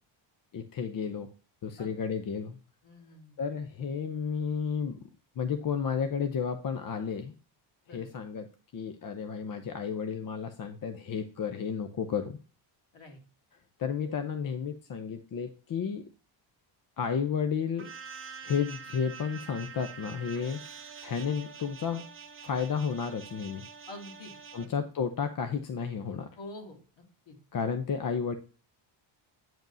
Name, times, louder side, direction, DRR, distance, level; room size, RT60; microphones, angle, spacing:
voice 1, 0.5-1.3 1.6-2.6 3.4-5.0 5.4-7.3 7.9-8.5 8.7-12.4 13.8-16.1 17.0-17.9 18.4-20.6 21.0-22.0 22.4-23.7 24.5-26.3 27.5-28.4, left 6 dB, 45° left, 8 dB, 0.7 m, -32 dB
voice 2, 2.8-3.3 7.9-8.2 12.9-13.2 23.9-24.8 26.4-27.4, left 1 dB, 65° left, 1 dB, 2.4 m, -47 dB
sound 1, 17.8-24.7, right 6 dB, 25° right, 0.9 m, -46 dB
9.1 x 5.1 x 2.6 m, 0.37 s
cardioid pair, 100°, 48 cm